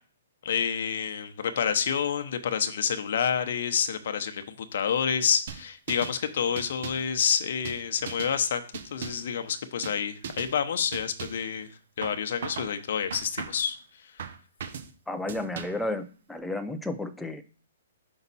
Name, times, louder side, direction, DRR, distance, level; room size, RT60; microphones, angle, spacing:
voice 1, 0.4-11.7 12.0-14.2, left 7 dB, 60° left, 7 dB, 0.9 m, -28 dB
sound 1, 5.5-6.2 6.6-7.1 7.7-8.4 8.7-9.3 9.8-10.0 10.2-10.5 10.9-11.5 12.0-12.7 13.1-13.7 14.2-14.9 15.3-15.9, right 6 dB, 55° right, 1.0 m, -38 dB
voice 2, 15.1-17.4, left 2 dB, 5° left, 7 dB, 0.5 m, -32 dB
5.8 x 5.4 x 4.1 m, 0.40 s
hypercardioid pair, 155°, 0 cm